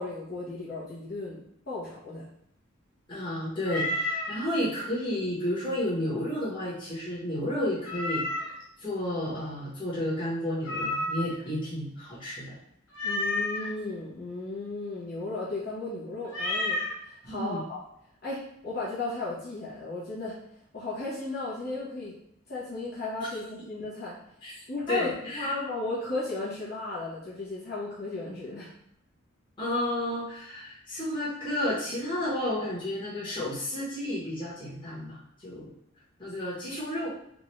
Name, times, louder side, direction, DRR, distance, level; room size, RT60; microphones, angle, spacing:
voice 1, 0.0-2.2 13.0-16.8 17.2-17.8 18.2-20.4 20.7-22.1 22.5-24.2 24.7-28.7, left 2 dB, 50° left, -9 dB, 1.2 m, -35 dB
voice 2, 3.1-8.5 8.8-12.5 17.2-17.6 24.4-24.5 24.9-25.5 29.6-35.7 36.2-37.1, left 1 dB, 25° left, -9 dB, 1.4 m, -31 dB
Meow, 3.6-4.4 7.8-8.6 10.6-11.4 12.9-13.7 16.3-16.9, left 2 dB, 75° left, 1.0 m, -30 dB
3.8 x 2.5 x 3.2 m, 0.74 s
head